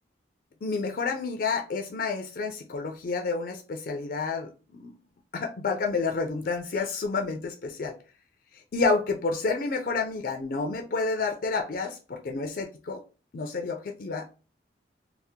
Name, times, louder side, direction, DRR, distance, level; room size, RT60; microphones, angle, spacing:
voice 1, 0.6-4.9 5.3-8.0 8.7-13.0 13.3-14.3, left 4 dB, 50° left, 0.4 m, -29 dB
2.7 x 2.0 x 3.5 m
head